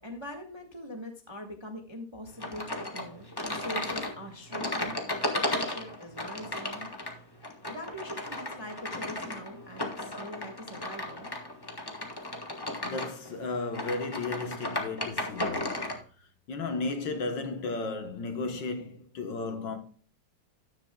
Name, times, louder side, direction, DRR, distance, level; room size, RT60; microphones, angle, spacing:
voice 1, 0.0-5.0 5.5-6.9 7.7-11.3, equal, 15° right, 1.1 m, -42 dB
sound 1, 2.4-16.0, left 1 dB, 15° left, 0.9 m, -35 dB
voice 2, 12.5-15.9 16.2-19.8, left 3 dB, 60° left, 1.8 m, -34 dB
13.0 x 10.5 x 2.3 m
omnidirectional pair, 2.4 m